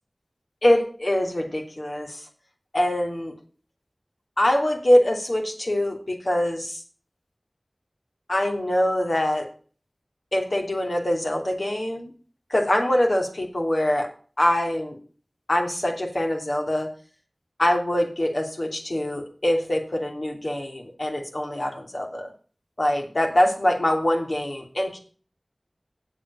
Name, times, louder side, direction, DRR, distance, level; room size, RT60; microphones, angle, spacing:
voice 1, 0.6-2.3 2.7-3.3 4.4-6.8 8.3-9.5 10.3-12.1 12.5-14.1 14.4-15.0 15.5-16.9 17.6-22.3 22.8-25.0, left 1 dB, 65° left, 2 dB, 3.0 m, -24 dB
8.1 x 7.8 x 8.4 m, 0.41 s
wide cardioid pair, 45°, 0 cm